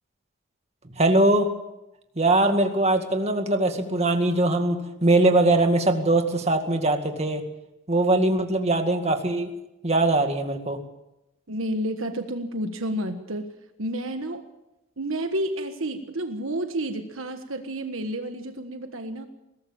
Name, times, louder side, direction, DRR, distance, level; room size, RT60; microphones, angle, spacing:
voice 1, 1.0-1.5 2.2-7.4 7.9-9.5 9.8-10.8, right 2 dB, 30° right, 5 dB, 2.1 m, -21 dB
voice 2, 11.5-13.5 13.8-14.4 15.0-19.3, right 1 dB, 65° right, 7 dB, 1.5 m, -30 dB
22.0 x 18.0 x 7.2 m, 0.93 s
head